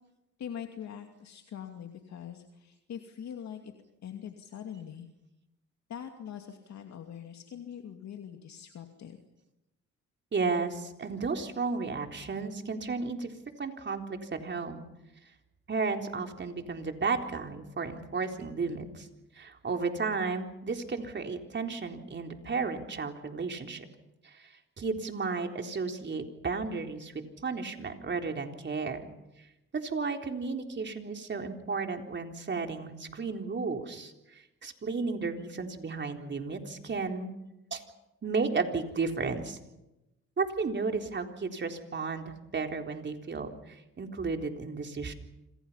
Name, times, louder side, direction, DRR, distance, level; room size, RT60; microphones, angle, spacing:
voice 1, 0.4-3.7 4.0-5.1 5.9-9.2, left 8 dB, 65° left, 4 dB, 2.5 m, -43 dB
voice 2, 10.3-13.3 13.6-14.8 15.7-19.1 19.4-23.9 24.2-24.5 24.8-29.0 29.7-37.3 37.7-37.8 38.2-39.6 40.4-45.1, right 4 dB, 35° right, 4 dB, 3.9 m, -33 dB
29.0 x 26.5 x 5.7 m, 0.93 s
cardioid pair, 90°, 30 cm